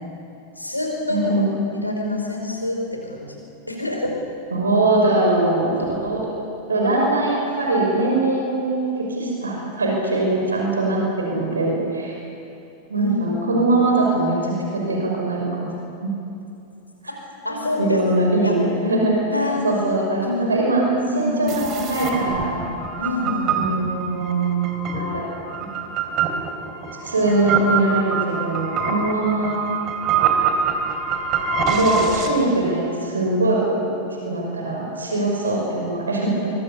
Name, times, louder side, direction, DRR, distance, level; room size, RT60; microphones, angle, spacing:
voice 1, 0.6-1.2 1.7-3.2 3.7-4.1 12.9-13.1 13.5-13.6 17.4-18.0 18.4-18.5 19.3-19.6 20.2-20.4 21.1-21.6 23.0-23.6, left 2 dB, 85° left, 0 dB, 5.2 m, -26 dB
voice 2, 1.1-1.5 4.5-6.2 6.7-12.2 12.9-15.7 16.0-16.1 17.0-17.1 17.8-19.2 19.6-20.9 21.1-22.6 23.6-24.7 25.0-25.4 27.0-29.6 31.7-33.9 34.3-36.5, right 2 dB, 75° right, -1 dB, 5.6 m, -21 dB
sound 1, 21.5-32.3, right 5 dB, 35° right, 3.3 m, -25 dB
24.5 x 23.5 x 7.2 m, 2.8 s
figure-of-eight pair, 90°, 0 cm